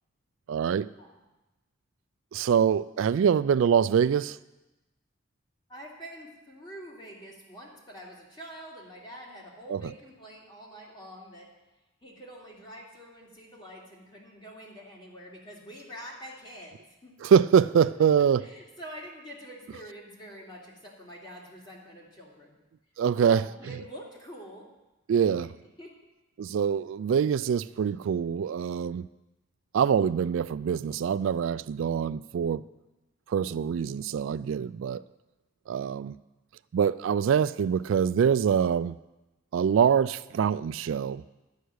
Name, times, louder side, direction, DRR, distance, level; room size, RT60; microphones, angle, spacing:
voice 1, 0.5-0.9 2.3-4.4 9.7-9.8 17.2-18.5 23.0-23.4 25.1-25.5 26.4-29.1 29.7-32.6 33.3-35.0 35.7-36.2 36.7-39.0 39.5-41.2, right 7 dB, 75° right, 0.3 m, -24 dB
voice 2, 5.7-11.5 12.0-17.1 18.4-22.5 23.1-24.7 25.8-25.9, equal, 25° left, 2.6 m, -46 dB
11.5 x 6.5 x 9.4 m
head